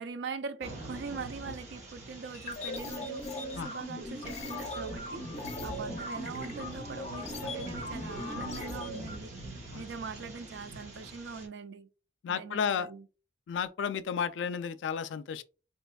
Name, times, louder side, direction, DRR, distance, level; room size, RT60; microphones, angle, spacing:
voice 1, 0.0-5.3 5.6-9.3 9.7-11.9 12.3-13.1, right 5 dB, 75° right, 0.4 m, -42 dB
sound 1, 0.6-11.5, right 1 dB, 40° right, 0.8 m, -45 dB
sound 2, 2.3-9.1, left 1 dB, 35° left, 0.6 m, -39 dB
voice 2, 12.2-12.9 13.5-15.4, left 7 dB, 90° left, 0.3 m, -32 dB
4.1 x 2.8 x 2.2 m
head